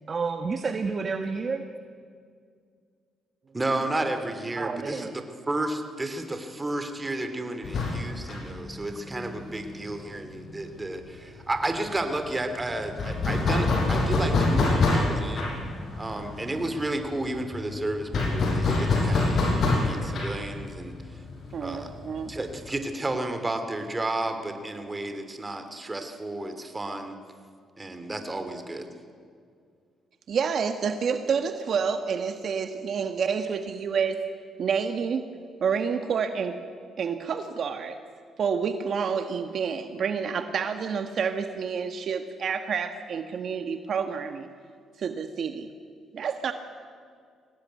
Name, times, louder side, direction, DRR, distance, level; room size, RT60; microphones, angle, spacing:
voice 1, 0.1-1.7 4.6-5.1, right 4 dB, 40° right, 7 dB, 1.4 m, -30 dB
voice 2, 3.5-15.5 16.0-19.4 19.7-20.9 21.6-22.0 22.3-27.2 27.8-28.9, right 2 dB, 20° right, 7 dB, 2.9 m, -32 dB
sound 1, 7.6-11.1 11.3-11.4 11.7-22.7, left 3 dB, 60° left, 6.5 m, -26 dB
voice 3, 21.5-22.3 30.3-34.2 34.6-35.3 35.6-36.6 37.0-38.0 38.4-44.5 45.0-45.7 46.1-46.5, right 6 dB, 60° right, 7 dB, 1.4 m, -28 dB
22.5 x 18.5 x 9.5 m, 2.2 s
cardioid pair, 90°, 0 cm